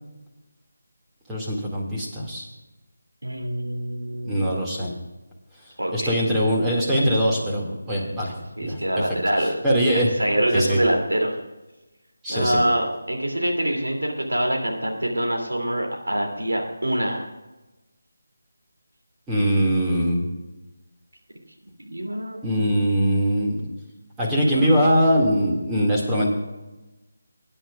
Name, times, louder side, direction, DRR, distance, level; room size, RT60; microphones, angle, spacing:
voice 1, 1.3-2.5 4.2-4.9 5.9-8.3 8.6-8.8 9.6-10.1 10.5-10.8 12.2-12.6 19.3-20.3 22.4-23.7 24.2-26.3, equal, 10° right, -4 dB, 2.2 m, -22 dB
voice 2, 3.2-4.5 5.8-6.2 8.6-9.6 9.9-11.4 12.3-17.3 21.8-23.2 24.5-24.8, right 1 dB, 80° right, 1 dB, 2.8 m, -25 dB
21.0 x 10.0 x 2.4 m, 1.0 s
figure-of-eight pair, 160°, 0 cm